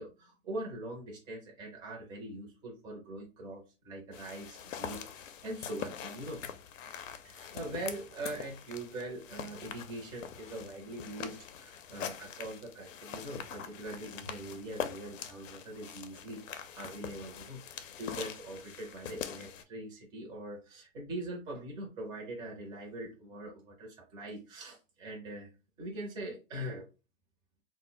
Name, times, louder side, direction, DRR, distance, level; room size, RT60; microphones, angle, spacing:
voice 1, 0.0-6.4 7.2-25.5 25.8-26.9, right 1 dB, 10° right, -1 dB, 0.5 m, -42 dB
sound 1, 4.1-19.6, left 8 dB, 80° left, 0.5 m, -43 dB
2.1 x 2.1 x 3.7 m, 0.29 s
hypercardioid pair, 140°, 38 cm